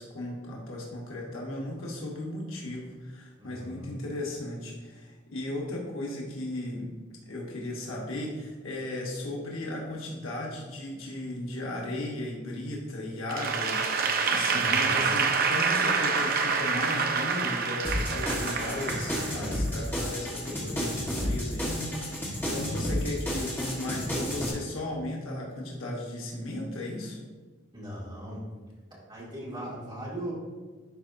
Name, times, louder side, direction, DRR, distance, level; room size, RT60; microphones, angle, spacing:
voice 1, 0.0-6.9 7.3-27.2, left 1 dB, 90° left, -2 dB, 1.1 m, -36 dB
voice 2, 3.4-4.0 14.5-15.0 22.4-22.9 27.7-28.4 29.1-30.3, equal, 25° right, -6 dB, 2.0 m, -39 dB
Applause / Crowd, 13.3-19.7, right 5 dB, 45° right, 0.5 m, -27 dB
sound 1, 17.8-24.5, equal, 10° left, 1.2 m, -32 dB
10.5 x 4.5 x 2.6 m, 1.4 s
head